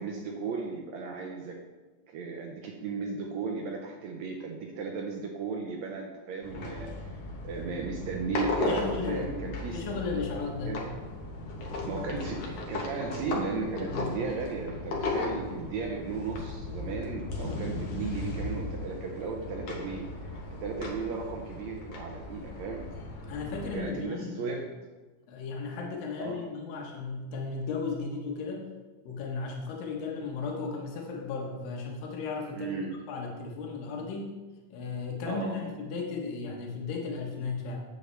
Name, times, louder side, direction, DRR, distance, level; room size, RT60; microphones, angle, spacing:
voice 1, 0.0-1.6 2.1-7.2 7.4-9.8 10.7-10.8 11.6-22.9 23.7-24.7 26.2-26.4 32.5-33.0 35.2-35.6, right 4 dB, 75° right, 1 dB, 1.7 m, -35 dB
sound 1, 6.4-23.8, left 2 dB, 60° left, 1.7 m, -36 dB
voice 2, 8.6-9.3 9.7-10.8 13.9-14.1 23.3-24.6 25.3-28.7 29.1-32.7 33.1-34.4 34.7-37.8, left 4 dB, 85° left, 0 dB, 2.9 m, -35 dB
8.6 x 7.9 x 3.2 m, 1.2 s
omnidirectional pair, 4.0 m